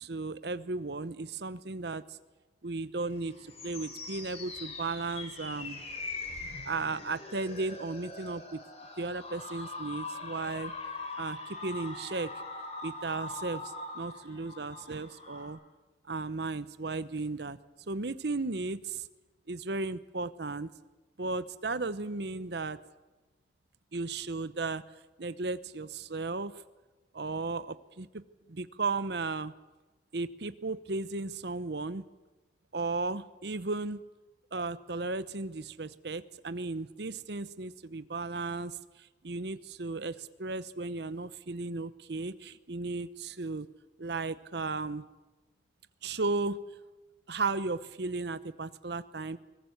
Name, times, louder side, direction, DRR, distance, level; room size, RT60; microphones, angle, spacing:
voice 1, 0.0-2.2 2.6-5.8 6.7-8.6 9.0-10.7 11.2-12.3 12.8-15.6 16.1-17.6 17.9-19.1 19.5-20.7 21.2-22.8 23.9-24.8 25.2-26.5 27.1-28.2 28.5-29.5 30.1-32.0 32.7-34.0 34.5-43.7 44.0-45.1 46.0-46.6 47.3-49.4, right 3 dB, 60° right, 15 dB, 0.8 m, -35 dB
sound 1, 3.1-15.5, left 3 dB, 35° left, 4.0 m, -42 dB
22.0 x 20.0 x 8.0 m, 1.2 s
head